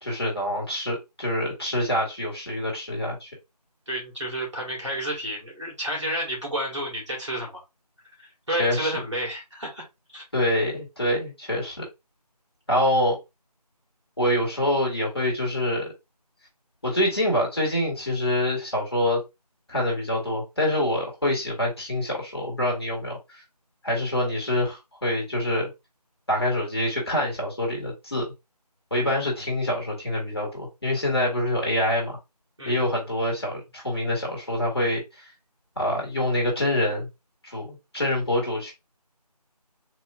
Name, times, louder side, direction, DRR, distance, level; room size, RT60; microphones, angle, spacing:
voice 1, 0.0-3.3 8.5-9.0 10.3-11.8 12.7-13.2 14.2-15.9 16.8-19.2 19.7-23.4 23.8-25.7 26.3-28.3 28.9-32.2 32.7-35.3 35.8-37.1 37.4-38.7, left 1 dB, 40° left, 1.6 m, -26 dB
voice 2, 3.9-7.6 8.2-9.8 10.1-10.3 32.6-32.9, right 1 dB, 45° right, 1.8 m, -31 dB
4.2 x 2.8 x 2.3 m
figure-of-eight pair, 180°, 21 cm